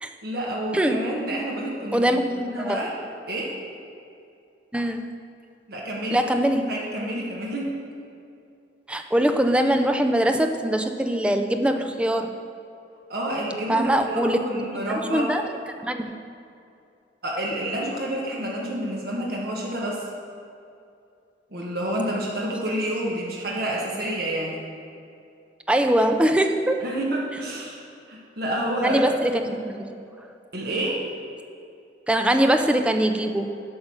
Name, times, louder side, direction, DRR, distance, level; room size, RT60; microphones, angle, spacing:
voice 1, 0.2-2.9 3.3-3.5 5.7-6.2 6.7-7.7 13.1-15.3 17.2-20.0 21.5-24.6 26.8-29.0 30.5-31.0, right 1 dB, 60° right, -3 dB, 1.2 m, -29 dB
voice 2, 1.9-2.8 4.7-5.1 6.1-6.7 8.9-12.3 13.7-16.2 25.7-26.8 28.8-30.3 32.1-33.6, right 1 dB, 5° right, 5 dB, 0.4 m, -23 dB
8.2 x 5.0 x 6.2 m, 2.6 s
head